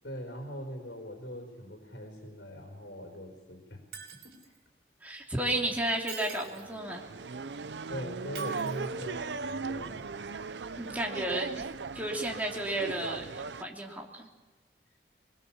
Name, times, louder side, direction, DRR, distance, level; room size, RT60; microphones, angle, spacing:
voice 1, 0.0-3.8 4.2-4.5 7.9-10.0, equal, 80° left, 1 dB, 4.2 m, -41 dB
Shatter, 3.9-4.6 5.8-6.8 8.3-9.3 11.6-11.7, right 7 dB, 65° right, 5.2 m, -47 dB
voice 2, 5.0-7.0 10.8-11.7 11.9-14.3, right 1 dB, 10° right, 0 dB, 3.2 m, -33 dB
sound 1, 6.3-13.6, right 4 dB, 85° right, 0.7 m, -38 dB
24.5 x 21.5 x 7.3 m, 1.2 s
head